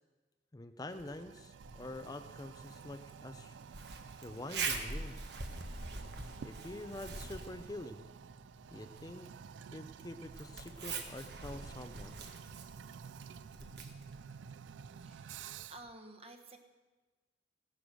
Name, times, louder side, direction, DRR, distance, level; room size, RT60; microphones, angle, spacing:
voice 1, 0.5-3.6 4.2-5.1 6.4-8.0 8.7-9.3 9.7-12.2, left 2 dB, 20° left, 8 dB, 0.5 m, -46 dB
Toilet flush, 0.9-15.9, right 7 dB, 90° right, 0.4 m, -51 dB
Zipper (clothing), 1.6-15.2, right 4 dB, 65° right, 1.5 m, -45 dB
voice 2, 14.9-15.4 15.7-16.6, right 2 dB, 35° right, 5 dB, 1.3 m, -52 dB
16.5 x 11.0 x 6.3 m, 1.3 s
head